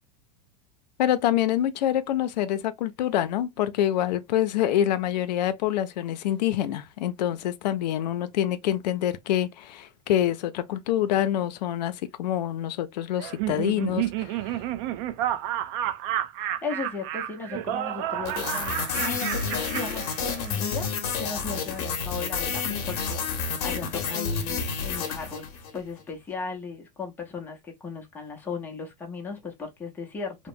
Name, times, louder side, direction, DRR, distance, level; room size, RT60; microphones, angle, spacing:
voice 1, 1.0-14.6, left 11 dB, 90° left, 0.4 m, -26 dB
Laughter, 13.2-20.7, right 12 dB, 45° right, 0.4 m, -31 dB
voice 2, 16.4-20.9 21.2-25.5 25.7-30.4, left 4 dB, 10° left, 0.6 m, -36 dB
sound 1, 18.3-25.8, left 5 dB, 45° left, 0.8 m, -30 dB
2.9 x 2.0 x 2.5 m
supercardioid pair, 155°, 21 cm